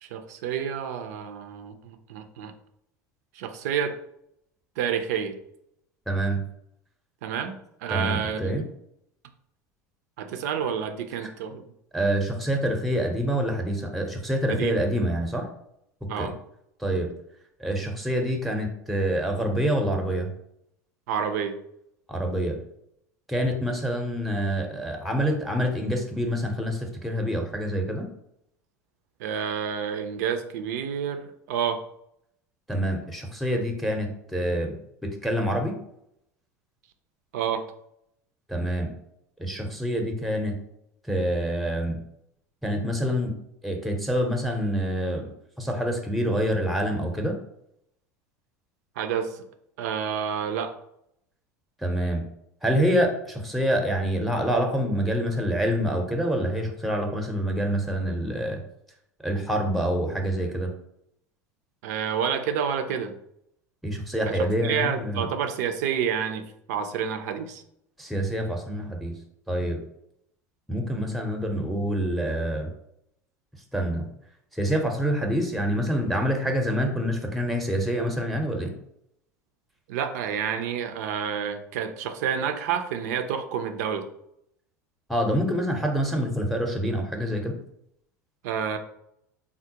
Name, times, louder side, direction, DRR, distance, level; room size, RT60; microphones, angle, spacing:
voice 1, 0.0-2.5 3.3-4.0 4.8-5.4 7.2-8.7 10.2-11.6 14.5-14.8 16.1-16.3 21.1-21.6 29.2-31.8 37.3-37.7 49.0-49.4 49.8-50.7 61.8-63.1 64.3-67.6 79.9-84.1 88.4-88.8, right 7 dB, 70° right, 8 dB, 0.4 m, -29 dB
voice 2, 6.1-6.4 7.9-8.6 11.9-15.5 16.2-16.3 16.8-17.1 17.6-20.3 22.1-22.6 23.3-28.1 32.7-34.7 35.0-35.7 38.5-38.9 39.4-40.6 41.1-42.0 42.6-43.3 43.6-45.2 45.6-47.3 51.8-52.2 52.6-58.6 59.2-60.7 63.8-65.3 68.0-69.1 69.5-69.8 70.7-72.7 73.7-74.0 74.6-78.7 85.1-87.6, equal, ahead, 3 dB, 0.6 m, -26 dB
3.5 x 2.1 x 2.8 m, 0.76 s
hypercardioid pair, 80°, 9 cm